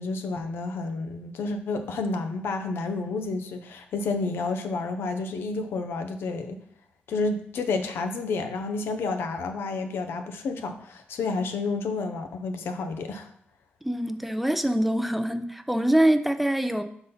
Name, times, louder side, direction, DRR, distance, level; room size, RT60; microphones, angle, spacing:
voice 1, 0.0-6.6 7.1-13.3, left 3 dB, 85° left, 7 dB, 0.7 m, -30 dB
voice 2, 13.8-16.8, right 1 dB, 5° right, 8 dB, 0.4 m, -24 dB
5.2 x 4.0 x 5.5 m, 0.67 s
cardioid pair, 105°, 4 cm